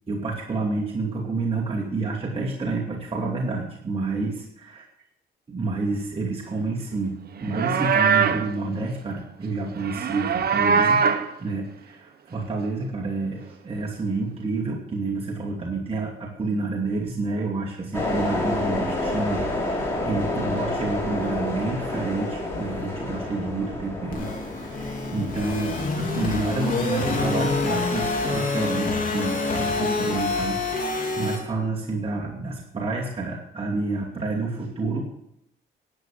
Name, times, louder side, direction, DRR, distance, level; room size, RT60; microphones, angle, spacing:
voice 1, 0.1-4.8 5.5-11.0 11.4-24.3 24.6-35.0, right 3 dB, 30° right, -3 dB, 2.6 m, -29 dB
Livestock farm animals working animals, 7.4-8.5 9.8-11.3, right 6 dB, 50° right, 1.1 m, -21 dB
sound 1, 17.9-28.1, left 2 dB, 10° left, 4.7 m, -30 dB
sound 2, 24.1-31.4, left 3 dB, 45° left, 4.1 m, -26 dB
12.5 x 8.6 x 7.6 m, 0.79 s
cardioid pair, 90°, 20 cm